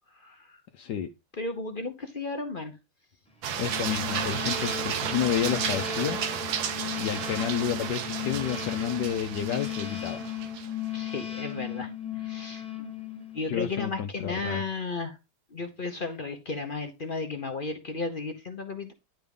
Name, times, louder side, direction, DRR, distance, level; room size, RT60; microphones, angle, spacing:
voice 1, 0.7-1.1 3.6-6.2 7.0-10.3 13.5-14.6, left 9 dB, 65° left, 1.1 m, -30 dB
voice 2, 1.4-2.7 10.9-11.9 12.2-12.6 13.3-15.2 15.5-18.9, left 3 dB, 40° left, 0.7 m, -34 dB
sound 1, 3.4-11.1, right 8 dB, 70° right, 1.6 m, -33 dB
sound 2, 3.6-13.6, left 8 dB, 5° left, 1.2 m, -36 dB
10.5 x 3.6 x 5.3 m
omnidirectional pair, 2.3 m